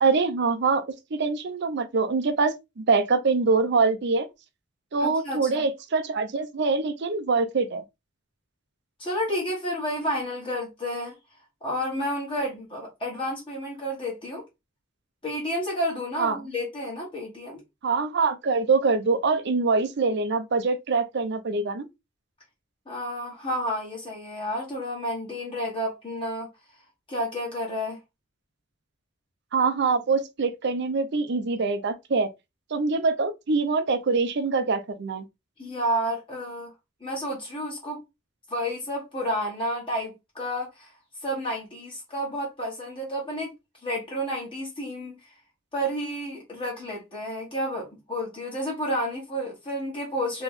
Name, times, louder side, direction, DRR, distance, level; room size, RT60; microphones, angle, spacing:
voice 1, 0.0-0.8 1.1-4.3 4.9-7.8 16.2-16.4 17.8-21.9 29.5-32.3 32.7-35.2, right 4 dB, 60° right, 0.6 m, -24 dB
voice 2, 5.0-5.6 9.0-11.1 11.6-14.4 15.2-17.6 22.9-26.5 27.1-28.0 35.6-36.7 37.0-38.0 38.5-40.9 41.2-43.5 43.8-45.2 45.7-50.4, equal, 25° left, 1.4 m, -30 dB
3.4 x 3.0 x 3.6 m
head